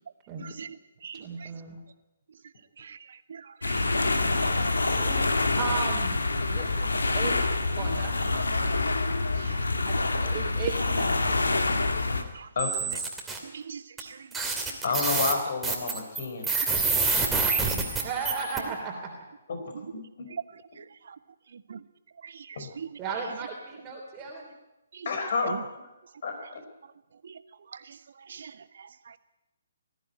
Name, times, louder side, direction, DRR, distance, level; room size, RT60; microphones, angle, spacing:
voice 1, 0.3-0.6 1.1-1.7 4.9-5.2 5.6-6.2 6.5-7.4 7.8-8.8 9.9-11.7 17.7-19.1 23.0-24.5, right 5 dB, 20° right, -1 dB, 3.2 m, -36 dB
voice 2, 1.0-1.5 2.8-3.0 3.3-4.5 9.4-9.6 12.3-12.5 13.5-14.2 16.9-17.1 17.5-17.6 21.7-21.8 22.2-22.9 24.9-25.1 25.5-25.6 27.2-27.3 28.3-28.5, right 6 dB, 55° right, 13 dB, 1.2 m, -42 dB
sound 1, 3.6-12.2, left 3 dB, 75° left, 2.0 m, -26 dB
voice 3, 12.5-12.9 14.8-16.5 19.5-19.6 19.9-20.3 22.5-22.7 25.0-25.6 26.2-26.6, left 4 dB, 55° left, 5 dB, 4.9 m, -30 dB
sound 2, 12.6-13.4 14.0-14.1 14.3-18.6, right 4 dB, 5° right, 2.7 m, -27 dB
19.5 x 14.5 x 9.4 m, 1.0 s
figure-of-eight pair, 135°, 0 cm